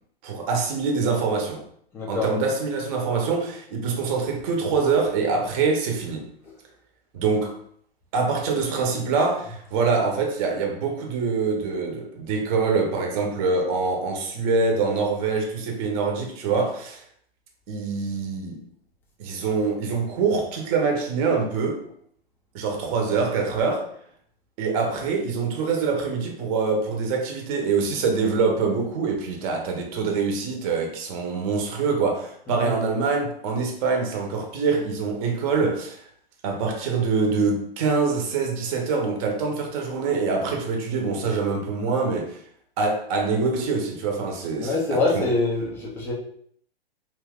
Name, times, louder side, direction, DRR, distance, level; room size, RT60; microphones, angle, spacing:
voice 1, 0.2-1.6 2.1-6.3 7.1-7.6 8.1-17.0 17.7-18.6 19.2-21.8 22.5-23.9 24.6-36.0 36.4-42.4 42.8-45.3, right 4 dB, 35° right, 0.7 m, -25 dB
voice 2, 1.9-2.4 6.4-6.5 32.5-32.8 44.6-46.1, left 3 dB, 10° left, 0.3 m, -25 dB
2.7 x 2.3 x 3.4 m
hypercardioid pair, 135°, 31 cm